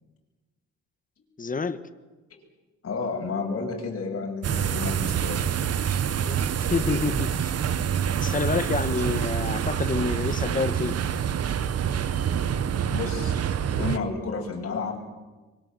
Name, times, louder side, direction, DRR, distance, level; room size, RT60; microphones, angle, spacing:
voice 1, 1.4-1.8 6.2-7.5 8.2-10.9, left 4 dB, 25° left, 12 dB, 1.6 m, -28 dB
voice 2, 2.8-5.5 12.9-13.4 13.7-15.0, left 4 dB, 50° left, 0 dB, 7.2 m, -31 dB
sound 1, 4.4-14.0, right 8 dB, 55° right, 1.3 m, -26 dB
25.0 x 24.0 x 7.7 m, 1.2 s
cardioid pair, 90°, 30 cm